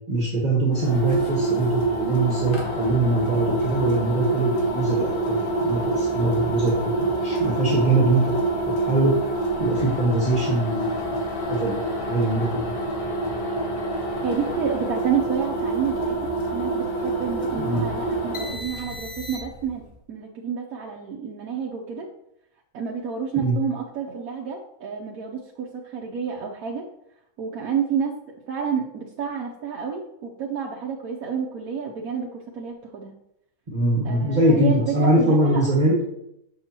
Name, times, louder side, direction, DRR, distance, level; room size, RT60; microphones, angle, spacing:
voice 1, 0.1-9.2 9.6-11.0 11.5-12.6 17.6-17.8 23.4-23.5 33.7-36.0, right 2 dB, 30° right, -5 dB, 1.3 m, -22 dB
sound 1, 0.7-19.7, right 2 dB, 65° left, 1.7 m, -26 dB
voice 2, 14.2-19.8 20.1-22.1 22.7-26.9 27.4-28.2 28.5-33.1 34.0-35.7, right 7 dB, 85° right, -1 dB, 1.2 m, -29 dB
6.8 x 6.3 x 2.9 m, 0.81 s
omnidirectional pair, 1.5 m